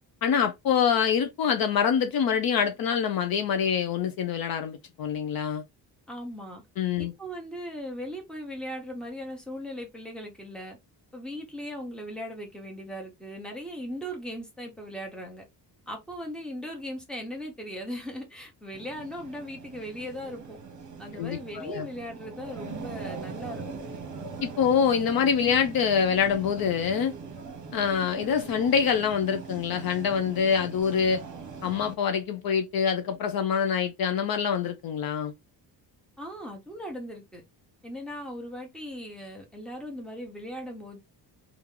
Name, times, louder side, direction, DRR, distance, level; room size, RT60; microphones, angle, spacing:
voice 1, 0.2-5.6 6.8-7.1 21.1-21.9 24.4-27.1 27.7-31.2 31.6-35.3, left 7 dB, 55° left, 0.5 m, -25 dB
voice 2, 6.1-6.6 7.0-10.8 11.1-15.4 15.9-20.6 21.0-23.8 36.2-37.4 37.8-41.0, equal, ahead, 0.9 m, -38 dB
sound 1, 18.7-32.0, right 5 dB, 40° right, 1.0 m, -41 dB
2.9 x 2.5 x 3.6 m
cardioid pair, 160°, 44 cm